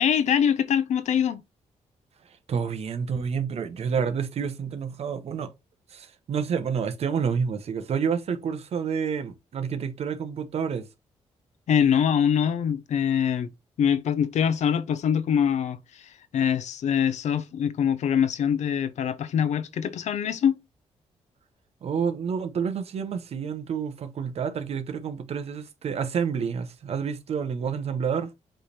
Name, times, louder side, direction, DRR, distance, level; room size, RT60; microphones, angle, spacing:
voice 1, 0.0-1.4 11.7-13.5 13.8-15.8 16.3-20.6, left 8 dB, 75° left, 0.8 m, -23 dB
voice 2, 2.5-5.5 5.9-10.9 21.8-28.3, right 6 dB, 60° right, 1.1 m, -29 dB
7.8 x 3.4 x 4.3 m
cardioid pair, 120°, 12 cm